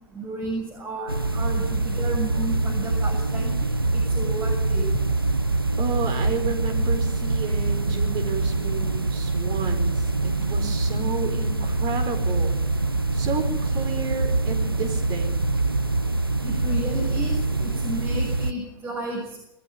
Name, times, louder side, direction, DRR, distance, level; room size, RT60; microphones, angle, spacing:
voice 1, 0.1-3.5 3.9-4.9 16.4-17.3 17.6-19.4, right 1 dB, 20° right, -1 dB, 7.0 m, -32 dB
sound 1, 1.1-18.5, right 2 dB, 90° right, 0.9 m, -24 dB
voice 2, 5.8-12.6 13.1-15.4, right 5 dB, 40° right, 6 dB, 4.9 m, -32 dB
22.0 x 14.5 x 9.6 m, 0.86 s
figure-of-eight pair, 90°, 12 cm